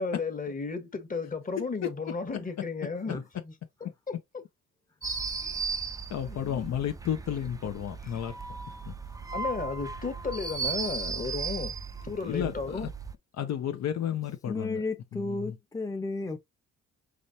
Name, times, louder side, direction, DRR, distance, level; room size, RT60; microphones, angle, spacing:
voice 1, 0.0-3.4 3.8-4.4 6.1-6.7 8.0-8.2 9.3-11.8 12.0-12.9 13.8-13.9, left 4 dB, 25° left, 1.3 m, -34 dB
voice 2, 3.1-3.5 14.5-16.4, left 3 dB, 10° left, 0.8 m, -34 dB
sound 1, 5.0-13.1, right 4 dB, 10° right, 0.4 m, -36 dB
voice 3, 6.1-8.3 12.3-12.9 13.4-14.8, left 10 dB, 60° left, 0.8 m, -32 dB
5.1 x 3.1 x 2.7 m
cardioid pair, 90°, 30 cm